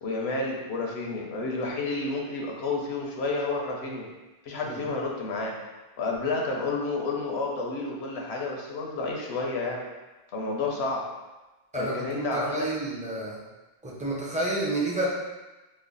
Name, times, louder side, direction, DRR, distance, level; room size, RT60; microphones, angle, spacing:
voice 1, 0.0-4.1 4.4-5.5 6.0-9.8 10.3-11.0 11.8-12.7, left 3 dB, 80° left, -1 dB, 0.9 m, -30 dB
voice 2, 11.7-13.4 13.8-15.1, right 1 dB, 10° right, -6 dB, 0.5 m, -30 dB
3.2 x 2.1 x 3.8 m, 1.1 s
omnidirectional pair, 1.1 m